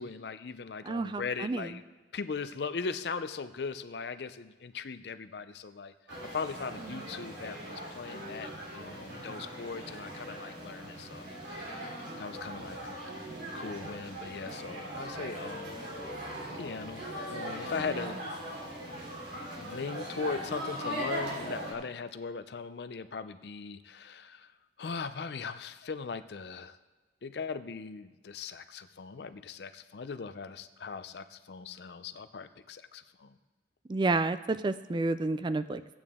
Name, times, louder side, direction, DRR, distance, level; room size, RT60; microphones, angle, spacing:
voice 1, 0.0-1.8 2.1-5.9 6.2-13.1 13.5-15.8 16.5-18.2 19.6-24.5 24.8-26.8 27.2-33.3, left 5 dB, 65° left, 12 dB, 0.5 m, -39 dB
voice 2, 0.8-1.7 6.9-7.1 33.9-35.9, right 3 dB, 25° right, 13 dB, 0.3 m, -30 dB
sound 1, 6.1-21.7, equal, 90° right, 3.3 m, -40 dB
15.5 x 8.9 x 3.6 m, 1.2 s
head